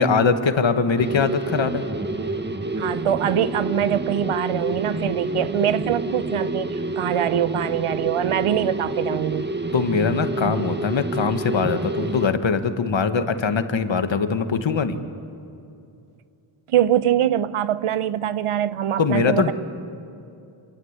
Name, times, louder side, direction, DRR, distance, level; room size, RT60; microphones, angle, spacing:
voice 1, 0.0-1.8 9.7-15.0 19.0-19.5, left 5 dB, 65° left, 1.6 m, -22 dB
sound 1, 1.0-12.3, right 2 dB, 20° right, 1.6 m, -28 dB
voice 2, 2.8-9.5 16.7-19.5, right 10 dB, 90° right, 0.8 m, -23 dB
27.0 x 23.0 x 8.2 m
wide cardioid pair, 75°, 50 cm